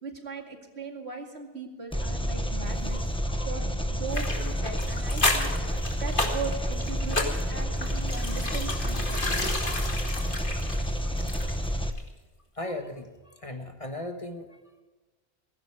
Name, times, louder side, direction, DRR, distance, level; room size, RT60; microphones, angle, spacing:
voice 1, 0.0-3.0 3.5-9.6, right 5 dB, 70° right, 2 dB, 2.6 m, -39 dB
Engine, 1.9-11.9, equal, 5° left, 1.0 m, -29 dB
voice 2, 2.9-3.5 11.0-11.3 12.6-14.8, left 1 dB, 30° left, 5 dB, 1.4 m, -39 dB
sound 1, 4.1-11.7 12.0-12.1, left 2 dB, 50° left, 2.2 m, -32 dB
16.5 x 16.0 x 4.8 m, 1.3 s
omnidirectional pair, 1.1 m